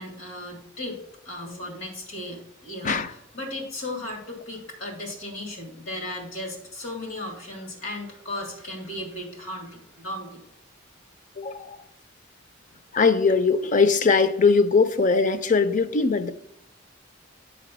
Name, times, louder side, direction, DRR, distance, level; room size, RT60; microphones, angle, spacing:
voice 1, 0.0-10.4, left 1 dB, 85° left, 2.3 m, -36 dB
voice 2, 11.4-11.8 12.9-16.3, left 4 dB, 40° left, 0.5 m, -21 dB
9.1 x 4.1 x 6.0 m
head